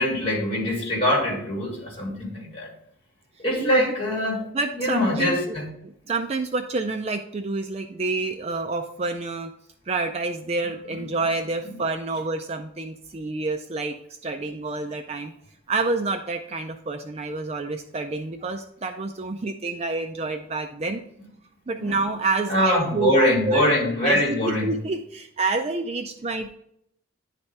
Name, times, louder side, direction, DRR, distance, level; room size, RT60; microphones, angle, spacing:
voice 1, 0.0-2.7 3.4-4.4 4.7-5.7 21.8-21.9 22.5-24.7, left 1 dB, 25° left, -2 dB, 2.4 m, -23 dB
voice 2, 3.6-3.9 4.5-5.6 5.8-9.5 9.9-14.0 14.2-15.3 15.7-21.0 21.7-23.6 24.0-26.6, right 3 dB, 30° right, 6 dB, 0.4 m, -28 dB
10.5 x 4.2 x 3.3 m, 0.74 s
head